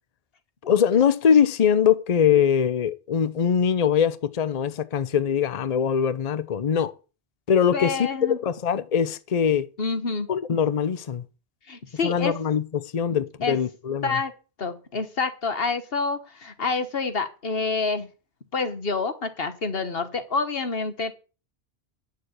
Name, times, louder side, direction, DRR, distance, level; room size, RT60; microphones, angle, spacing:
voice 1, 0.7-6.9 7.5-9.7 10.3-11.2 12.0-14.2, left 7 dB, 40° left, 0.7 m, -22 dB
voice 2, 7.7-8.4 9.8-10.3 11.7-12.3 13.4-13.6 14.0-14.3 14.6-18.1 18.5-21.1, left 4 dB, 60° left, 1.6 m, -27 dB
9.3 x 6.8 x 8.1 m
omnidirectional pair, 1.1 m